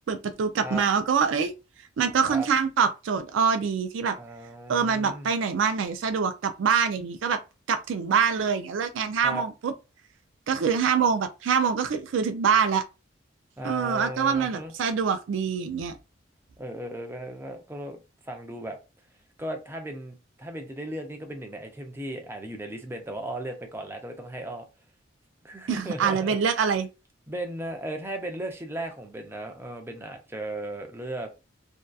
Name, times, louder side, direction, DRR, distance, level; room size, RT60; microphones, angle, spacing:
voice 1, 0.1-1.5 2.0-4.2 4.7-7.4 7.7-9.7 10.5-12.8 13.6-16.0 25.7-26.9, right 6 dB, 80° right, 0.4 m, -25 dB
voice 2, 4.2-5.3 9.2-9.4 13.6-14.7 16.6-18.8 19.4-24.7 25.4-26.4 27.3-31.3, right 1 dB, 15° right, 0.5 m, -36 dB
2.6 x 2.2 x 2.3 m
head